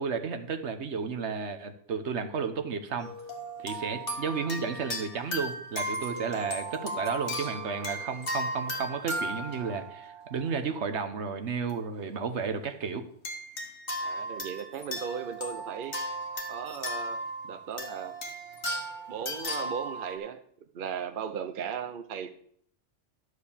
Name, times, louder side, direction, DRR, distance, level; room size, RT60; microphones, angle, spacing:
voice 1, 0.0-3.1 3.6-13.1, right 5 dB, 65° right, 7 dB, 1.2 m, -33 dB
sound 1, 3.0-10.8 11.5-11.7 13.2-20.2, right 1 dB, 50° left, 2.0 m, -36 dB
voice 2, 14.0-16.0 16.5-18.1 19.1-20.4 20.7-22.3, right 7 dB, 50° right, 9 dB, 0.8 m, -37 dB
12.0 x 4.9 x 7.0 m, 0.65 s
omnidirectional pair, 1.2 m